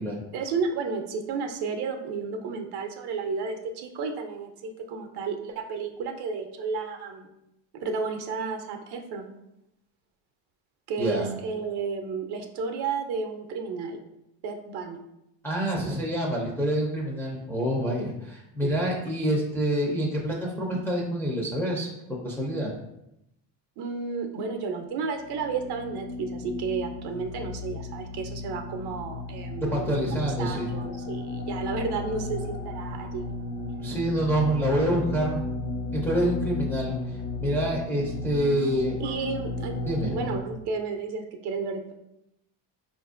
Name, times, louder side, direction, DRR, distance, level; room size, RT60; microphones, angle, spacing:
voice 1, 0.3-7.3 7.7-9.3 10.9-14.0 14.4-15.0 15.8-15.9 18.6-18.7 23.8-29.8 30.4-33.3 37.9-38.0 39.0-39.7 40.1-42.0, right 5 dB, 55° right, 5 dB, 0.6 m, -32 dB
voice 2, 11.0-11.3 15.4-22.7 29.6-30.7 33.8-35.4 35.9-37.0 37.4-39.0 39.9-40.2, right 1 dB, 5° left, -3 dB, 0.4 m, -27 dB
sound 1, 25.2-40.4, left 3 dB, 65° left, 0.9 m, -34 dB
4.2 x 2.5 x 2.4 m, 0.84 s
cardioid pair, 130°, 48 cm